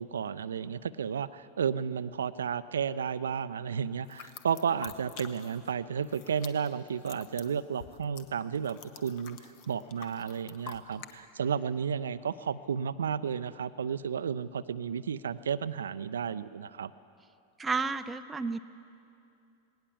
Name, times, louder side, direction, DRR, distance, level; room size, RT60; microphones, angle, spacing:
voice 1, 0.0-9.4 9.7-16.9, right 7 dB, 65° right, 16 dB, 0.5 m, -32 dB
sound 1, 4.0-5.7 6.0-11.1, left 8 dB, 45° left, 1.2 m, -48 dB
voice 2, 17.6-18.6, right 4 dB, 15° right, 9 dB, 0.5 m, -31 dB
19.5 x 18.0 x 7.3 m, 2.6 s
figure-of-eight pair, 90°, 0 cm